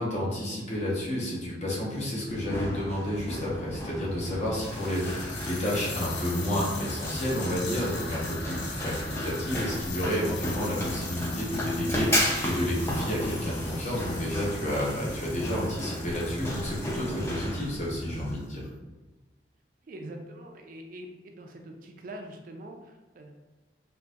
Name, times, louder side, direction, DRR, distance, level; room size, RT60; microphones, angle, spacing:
voice 1, 0.0-18.6, left 1 dB, 40° left, -4 dB, 0.9 m, -31 dB
sound 1, 1.3-1.4 2.3-2.4 4.5-18.6, left 4 dB, 75° left, 0.6 m, -41 dB
Run, 2.3-18.3, equal, 15° left, 0.5 m, -34 dB
voice 2, 19.8-23.3, right 1 dB, 50° right, 3 dB, 0.3 m, -44 dB
3.9 x 2.5 x 2.3 m, 1.2 s
head